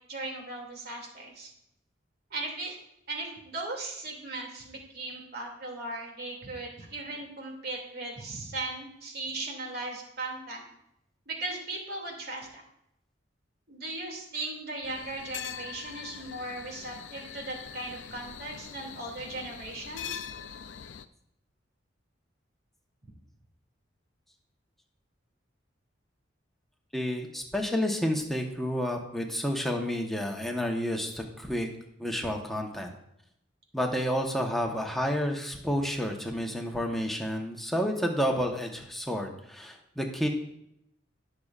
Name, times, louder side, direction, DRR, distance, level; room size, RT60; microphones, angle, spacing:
voice 1, 0.1-1.5 2.3-2.8 3.1-10.7 11.3-12.6 13.7-20.2 23.0-23.1, right 2 dB, 55° right, 0 dB, 2.6 m, -38 dB
sound 1, 14.8-21.0, left 8 dB, 85° left, 0.5 m, -42 dB
voice 2, 26.9-31.7 32.0-32.9 33.7-40.3, equal, ahead, 1 dB, 1.1 m, -30 dB
18.0 x 6.7 x 2.5 m, 0.78 s
head